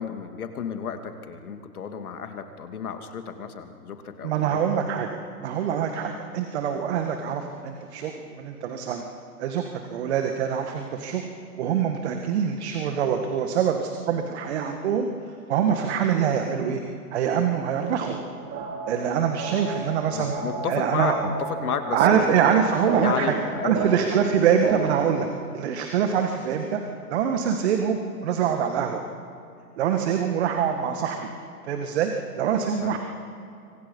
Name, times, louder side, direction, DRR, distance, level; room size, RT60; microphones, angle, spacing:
voice 1, 0.0-4.6 20.1-22.3 23.0-23.9 32.8-33.0, left 7 dB, 65° left, 6 dB, 2.6 m, -32 dB
voice 2, 4.2-5.1 5.4-9.0 9.4-11.3 11.6-15.1 15.5-16.8 17.1-18.2 18.9-20.3 20.7-21.2 21.9-23.4 23.6-25.3 25.5-26.8 27.1-29.0 29.8-31.3 31.6-32.1 32.4-33.0, right 8 dB, 45° right, 5 dB, 1.9 m, -24 dB
sound 1, 18.0-25.0, right 5 dB, 25° right, 2.9 m, -32 dB
26.5 x 25.5 x 5.5 m, 2.6 s
hypercardioid pair, 150°, 47 cm